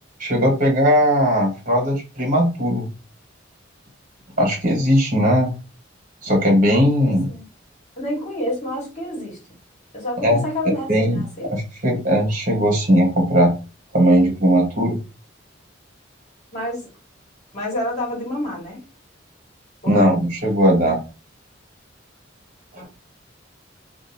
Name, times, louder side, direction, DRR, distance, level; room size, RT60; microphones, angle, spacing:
voice 1, 0.2-2.9 4.4-5.5 6.2-7.3 10.2-10.4 10.9-11.2 11.5-13.5 13.9-15.0 19.9-20.1 20.4-21.0, equal, 45° right, 0 dB, 1.2 m, -18 dB
voice 2, 7.0-7.5 8.0-9.4 9.9-11.5 16.5-16.9 17.5-18.8 19.8-20.1 22.8-22.9, left 1 dB, 40° left, -3 dB, 1.3 m, -28 dB
2.6 x 2.4 x 2.7 m, 0.31 s
head